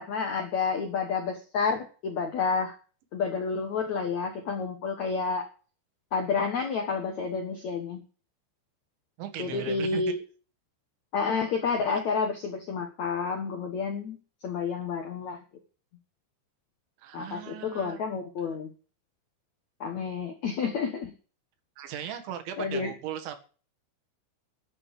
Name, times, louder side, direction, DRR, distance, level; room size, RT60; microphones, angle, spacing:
voice 1, 0.0-2.8 3.1-5.5 6.1-8.0 9.4-10.2 11.1-14.2 14.4-15.4 17.1-18.7 19.8-21.1 22.6-22.9, left 5 dB, 70° left, 4 dB, 1.7 m, -30 dB
voice 2, 9.2-10.1 11.9-12.0 17.0-18.0 21.8-23.4, right 10 dB, 75° right, 7 dB, 3.9 m, -37 dB
12.0 x 8.6 x 8.3 m, 0.38 s
omnidirectional pair, 5.5 m